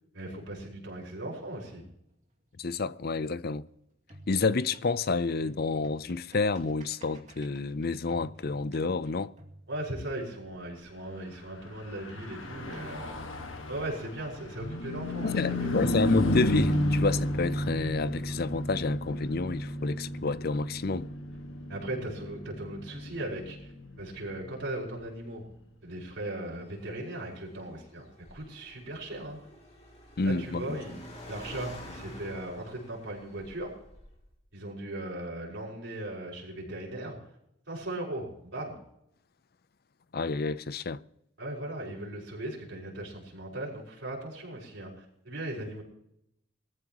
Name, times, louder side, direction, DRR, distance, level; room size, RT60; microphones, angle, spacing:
voice 1, 0.1-1.8 9.7-13.2 13.7-15.9 21.7-23.7 24.0-25.5 25.8-28.0 28.3-29.4 30.2-33.7 34.5-37.2 37.7-38.7 41.4-45.8, right 1 dB, 65° right, 5.6 m, -38 dB
sound 1, 1.7-3.7 4.0-10.4 12.1-14.4 16.1-18.4, right 1 dB, 35° right, 2.5 m, -53 dB
voice 2, 2.6-3.7 4.3-9.3 15.2-21.1 30.2-30.8 40.1-41.0, left 4 dB, 50° left, 0.5 m, -29 dB
Car passing by / Truck, 11.8-25.5, left 1 dB, 75° left, 1.7 m, -32 dB
Car, 26.4-34.4, left 1 dB, 30° left, 2.8 m, -49 dB
22.0 x 14.0 x 3.0 m
head